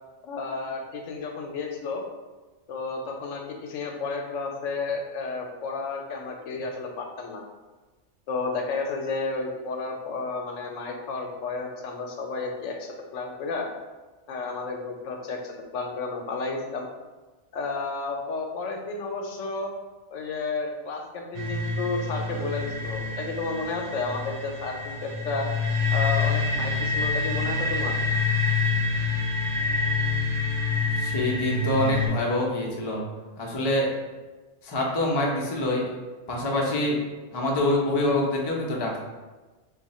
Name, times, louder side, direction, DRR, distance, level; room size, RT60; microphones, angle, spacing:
voice 1, 0.2-2.0 2.7-7.4 8.3-13.7 14.3-16.9 17.5-19.7 20.1-25.5 25.9-27.9, left 4 dB, 80° left, 2 dB, 0.9 m, -32 dB
sound 1, 21.3-32.1, left 3 dB, 80° right, 1.0 m, -27 dB
voice 2, 31.0-33.0 33.4-33.9 34.6-35.9 36.3-37.0 37.3-39.0, left 1 dB, 35° left, -3 dB, 0.4 m, -25 dB
2.7 x 2.4 x 4.1 m, 1.2 s
omnidirectional pair, 1.3 m